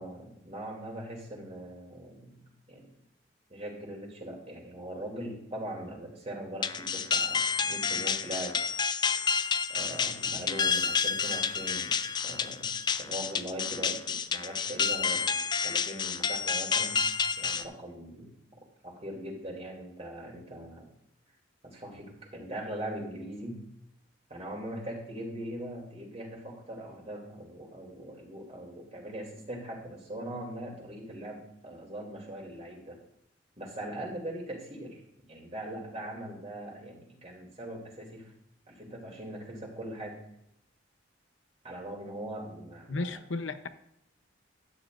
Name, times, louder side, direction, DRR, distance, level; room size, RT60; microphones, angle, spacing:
voice 1, 0.0-2.4 2.7-2.9 3.5-8.6 9.7-12.0 12.2-12.7 13.0-17.1 17.4-18.3 18.8-20.9 21.6-23.6 24.3-33.0 33.6-35.0 35.3-38.3 38.7-40.2 41.6-43.2, right 1 dB, 35° right, -1 dB, 2.7 m, -41 dB
sound 1, 6.6-17.6, left 6 dB, 25° left, 0.3 m, -29 dB
voice 2, 42.9-43.7, left 3 dB, 75° left, 10 dB, 0.8 m, -33 dB
12.5 x 9.5 x 2.6 m, 0.78 s
head